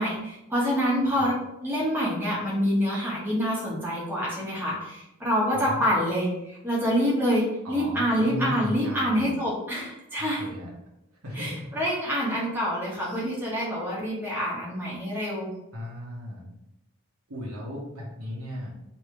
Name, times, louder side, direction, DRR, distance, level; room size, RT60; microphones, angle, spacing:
voice 1, 0.0-1.3 1.6-10.4 11.3-11.5 11.8-15.5, equal, 10° right, -6 dB, 1.1 m, -26 dB
voice 2, 7.6-9.4 10.2-10.7 11.2-11.6 15.7-16.5 17.3-18.7, left 1 dB, 75° right, -3 dB, 1.2 m, -36 dB
3.3 x 3.0 x 4.5 m, 0.88 s
head